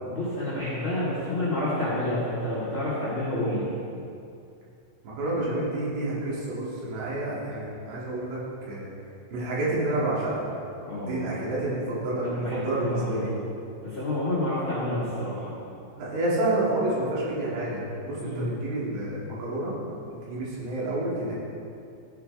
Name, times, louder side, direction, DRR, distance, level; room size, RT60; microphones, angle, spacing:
voice 1, 0.1-3.7 10.9-11.3 12.2-13.4 13.8-15.5 18.2-18.5, left 1 dB, 60° left, -9 dB, 1.3 m, -29 dB
voice 2, 5.0-8.4 8.7-8.9 9.3-10.5 11.0-13.3 16.0-19.8 20.3-21.3, right 1 dB, 85° right, -7 dB, 4.9 m, -29 dB
13.0 x 9.2 x 3.4 m, 2.5 s
omnidirectional pair, 5.4 m